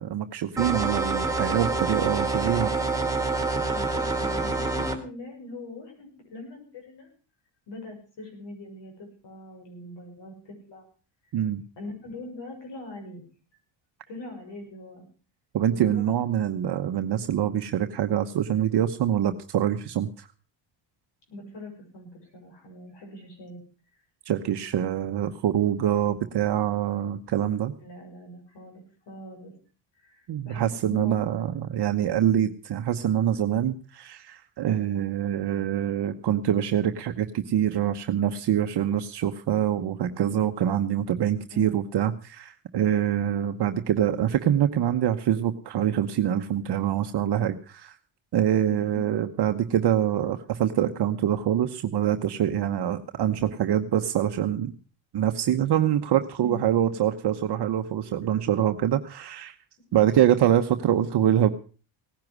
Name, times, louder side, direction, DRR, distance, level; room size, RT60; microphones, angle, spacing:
voice 1, 0.0-2.7 11.3-11.6 15.5-20.3 24.3-27.7 30.3-48.0 48.3-54.7 55.1-59.6 59.9-61.5, right 10 dB, 55° right, 7 dB, 1.1 m, -25 dB
sound 1, 0.6-5.0, right 3 dB, 5° right, 3.0 m, -27 dB
voice 2, 3.7-7.1 7.7-10.8 11.8-13.2 14.1-15.1 15.7-16.1 21.3-23.6 27.8-29.5 30.0-31.4 41.5-41.8 48.7-49.0 56.4-56.6, left 2 dB, 60° left, 2 dB, 6.9 m, -42 dB
18.0 x 10.5 x 6.1 m, 0.38 s
cardioid pair, 100°, 49 cm